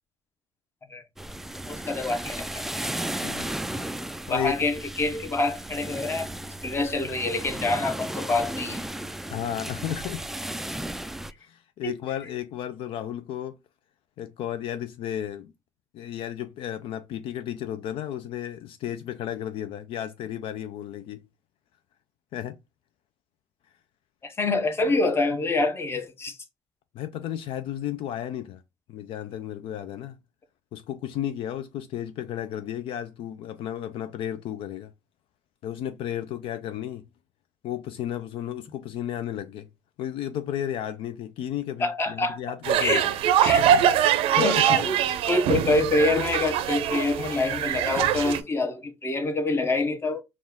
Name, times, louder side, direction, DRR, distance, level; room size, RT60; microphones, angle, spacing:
sound 1, 1.2-11.3, right 1 dB, 5° right, 0.3 m, -35 dB
voice 1, 1.7-2.6 4.3-6.3 6.6-8.9 11.8-11.9 24.2-26.4 41.8-42.4 42.8-43.1 43.4-43.8 44.4-45.0 45.2-50.2, left 2 dB, 25° left, 1.0 m, -26 dB
voice 2, 4.3-4.6 9.3-10.3 11.4-13.6 14.2-15.5 15.9-21.2 22.3-22.6 26.9-28.6 28.9-30.2 30.7-34.9 35.6-37.0 37.6-39.7 40.0-43.1 44.3-44.8, left 11 dB, 65° left, 0.4 m, -33 dB
sound 2, 42.6-48.4, right 10 dB, 70° right, 0.5 m, -23 dB
4.3 x 2.4 x 3.5 m
cardioid pair, 105°, 10 cm